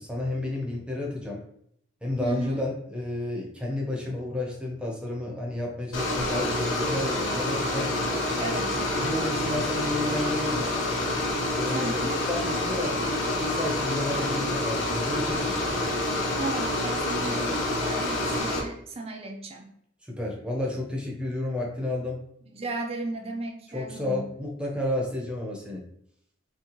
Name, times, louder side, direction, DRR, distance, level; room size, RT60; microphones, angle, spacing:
voice 1, 0.0-1.4 2.0-7.9 9.0-10.7 11.5-15.8 20.1-22.2 23.7-25.9, left 1 dB, 5° right, -1 dB, 0.8 m, -31 dB
voice 2, 2.2-2.6 8.4-8.8 11.7-12.2 16.4-19.7 22.5-24.2, right 2 dB, 30° right, 2 dB, 0.7 m, -35 dB
sound 1, 5.9-18.6, left 1 dB, 80° left, 1.2 m, -27 dB
5.8 x 2.3 x 3.0 m, 0.71 s
head